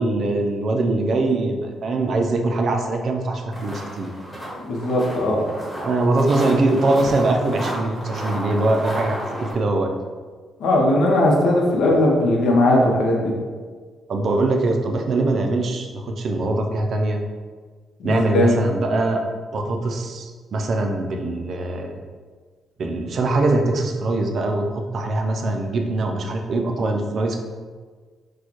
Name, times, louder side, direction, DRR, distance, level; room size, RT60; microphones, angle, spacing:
voice 1, 0.0-4.1 5.8-9.2 9.5-10.0 14.1-17.2 18.0-19.2 19.5-22.0 22.8-27.4, right 2 dB, 45° right, 3 dB, 0.4 m, -22 dB
sound 1, 3.5-9.5, equal, 15° left, 1.0 m, -32 dB
voice 2, 4.7-5.4 10.6-13.3 18.0-18.5, left 1 dB, 80° left, -1 dB, 0.9 m, -18 dB
6.3 x 2.2 x 3.0 m, 1.5 s
cardioid pair, 160°, 0 cm